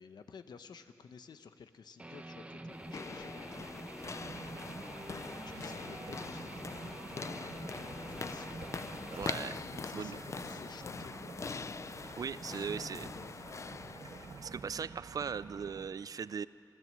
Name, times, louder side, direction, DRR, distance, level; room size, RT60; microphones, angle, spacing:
voice 1, 0.0-4.1 5.4-11.8 12.5-13.6, left 6 dB, 80° left, 9 dB, 1.0 m, -54 dB
Guitar, 2.0-9.6, right 1 dB, 20° right, 1.1 m, -47 dB
sound 1, 2.7-14.7, left 4 dB, 45° left, 0.5 m, -43 dB
sound 2, 4.0-15.9, right 5 dB, 80° right, 1.3 m, -50 dB
voice 2, 9.2-9.6 9.9-10.2 12.2-13.1 14.4-16.5, right 6 dB, 60° right, 17 dB, 0.4 m, -39 dB
29.5 x 12.5 x 7.6 m, 2.9 s
wide cardioid pair, 95°, 7 cm